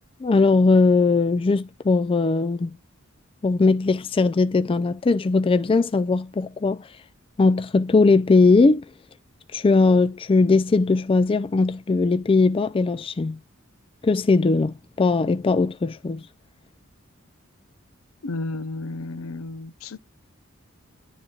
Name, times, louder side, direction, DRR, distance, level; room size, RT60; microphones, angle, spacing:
voice 1, 0.2-2.8 3.4-6.8 7.4-8.8 9.5-13.4 14.0-16.2, left 3 dB, 25° left, 0.4 m, -19 dB
voice 2, 18.2-20.0, left 2 dB, 80° left, 0.6 m, -32 dB
11.0 x 3.9 x 2.4 m
head